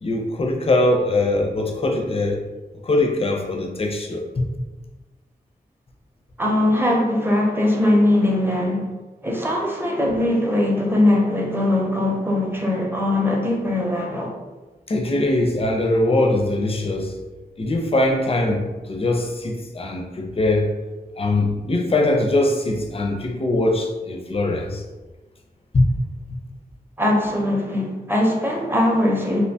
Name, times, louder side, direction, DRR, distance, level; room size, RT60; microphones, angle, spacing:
voice 1, 0.0-2.4 2.8-4.2 14.9-17.1 17.6-20.7 21.2-24.8 25.7-25.9, left 2 dB, 35° left, 2 dB, 0.4 m, -21 dB
voice 2, 6.4-8.9 9.2-14.3 27.0-29.5, left 1 dB, 15° right, -1 dB, 0.6 m, -20 dB
2.7 x 2.1 x 2.7 m, 1.2 s
cardioid pair, 60°, 17 cm